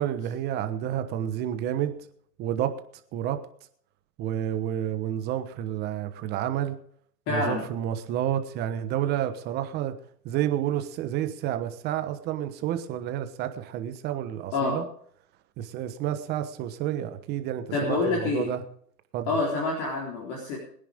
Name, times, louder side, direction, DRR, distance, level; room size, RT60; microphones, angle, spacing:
voice 1, 0.0-1.9 2.4-2.7 3.1-3.4 4.2-6.8 7.3-9.9 10.2-14.8 15.6-18.6 19.1-19.3, right 11 dB, 20° right, 9 dB, 1.1 m, -30 dB
voice 2, 7.3-7.6 14.5-14.8 17.7-18.5 19.3-20.6, left 3 dB, 35° left, -2 dB, 4.1 m, -27 dB
22.5 x 10.5 x 3.6 m, 0.62 s
hypercardioid pair, 145°, 48 cm